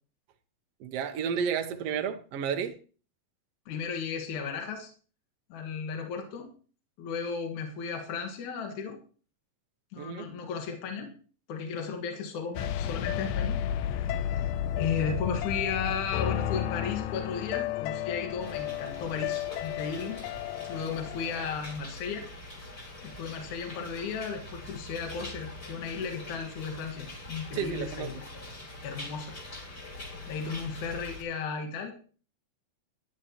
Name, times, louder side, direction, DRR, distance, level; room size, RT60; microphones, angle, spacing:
voice 1, 0.8-2.8 10.0-10.3 27.5-28.1, right 7 dB, 85° right, 1.4 m, -31 dB
voice 2, 3.7-4.9 5.5-6.5 7.0-9.0 9.9-11.1 11.5-13.6 13.9-14.5 14.8-20.2 20.7-22.2 23.0-28.3 28.8-29.4 30.3-31.9, left 6 dB, 65° left, 2.8 m, -35 dB
sound 1, 12.6-21.5, left 10 dB, 80° left, 1.8 m, -32 dB
sound 2, 18.4-31.2, left 2 dB, 30° left, 6.4 m, -44 dB
15.5 x 11.5 x 3.0 m
omnidirectional pair, 4.0 m